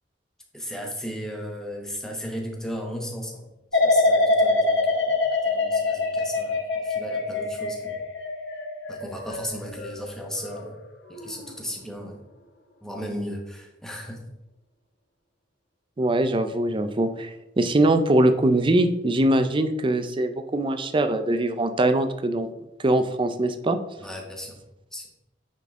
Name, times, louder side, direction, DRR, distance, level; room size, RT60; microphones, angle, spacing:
voice 1, 0.5-8.0 8.9-10.7 11.1-12.2 12.8-14.2 24.0-24.6 24.9-25.1, equal, 5° left, 1 dB, 1.1 m, -36 dB
sound 1, 3.7-10.7 11.1-11.5, left 2 dB, 85° left, 1.2 m, -24 dB
voice 2, 16.0-22.5 22.8-23.8, right 1 dB, 30° right, 9 dB, 0.5 m, -22 dB
9.1 x 3.9 x 3.6 m, 0.91 s
head